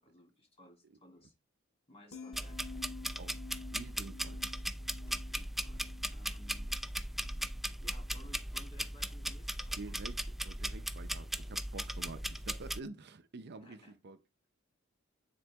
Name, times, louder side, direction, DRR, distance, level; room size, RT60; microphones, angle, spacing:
voice 1, 0.0-1.3 1.9-3.3 5.1-6.7 7.2-10.2 13.5-14.0, equal, 30° left, 3.1 m, -59 dB
sound 1, 2.1-8.4 8.7-9.1, left 5 dB, 90° left, 1.4 m, -52 dB
sound 2, 2.3-12.8, right 1 dB, ahead, 0.4 m, -38 dB
voice 2, 3.2-4.4 9.8-10.2 10.4-14.2, right 3 dB, 55° right, 0.6 m, -48 dB
9.7 x 4.4 x 3.5 m
head